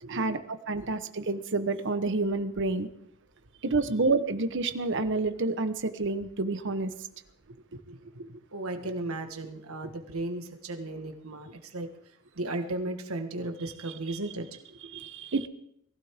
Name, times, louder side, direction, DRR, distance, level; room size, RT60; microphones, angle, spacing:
voice 1, 0.0-0.4 0.7-0.9 7.7-11.9 12.3-15.0, right 2 dB, 80° right, 6 dB, 1.6 m, -36 dB
voice 2, 0.7-2.9 3.6-6.9 7.7-7.8 14.1-14.2 14.9-15.5, right 3 dB, 60° right, 10 dB, 1.1 m, -28 dB
22.0 x 16.0 x 3.7 m, 0.77 s
head